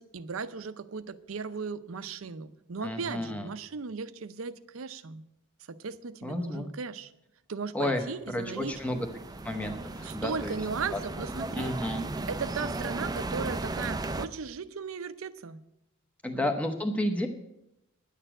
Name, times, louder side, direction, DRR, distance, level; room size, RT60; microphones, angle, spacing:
voice 1, 0.0-5.2 5.7-7.1 7.5-9.0 10.0-11.8 12.3-15.6 16.3-16.6, right 5 dB, 80° right, 13 dB, 0.6 m, -37 dB
voice 2, 2.8-3.5 6.2-6.7 7.7-9.1 9.4-10.5 10.9-11.0 11.5-12.0 16.2-17.3, left 1 dB, 5° left, 4 dB, 0.8 m, -31 dB
sound 1, 8.3-14.3, right 2 dB, 20° right, 0.4 m, -36 dB
10.0 x 6.6 x 8.9 m, 0.86 s
head